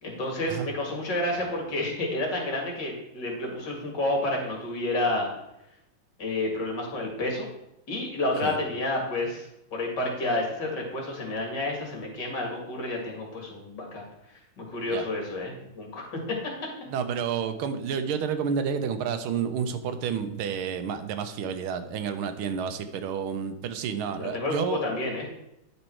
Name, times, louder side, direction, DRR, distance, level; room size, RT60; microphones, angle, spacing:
voice 1, 0.0-5.3 6.2-7.5 7.9-14.0 14.6-16.2 24.2-25.2, left 2 dB, 55° left, 0 dB, 2.5 m, -30 dB
voice 2, 16.9-24.8, right 7 dB, 85° right, 9 dB, 1.6 m, -30 dB
9.9 x 5.4 x 4.5 m, 0.84 s
omnidirectional pair, 2.3 m